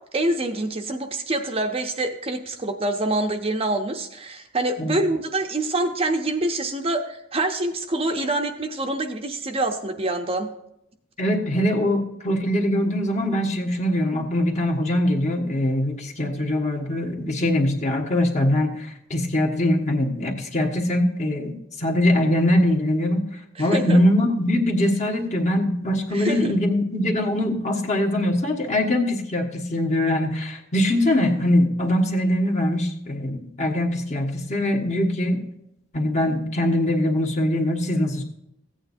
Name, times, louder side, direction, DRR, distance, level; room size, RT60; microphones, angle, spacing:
voice 1, 0.1-10.5 23.6-24.0 26.1-26.5, right 2 dB, 30° right, 5 dB, 0.7 m, -26 dB
voice 2, 11.2-35.4 35.9-38.2, left 1 dB, 35° left, 2 dB, 1.4 m, -22 dB
15.5 x 9.0 x 2.6 m, 0.81 s
head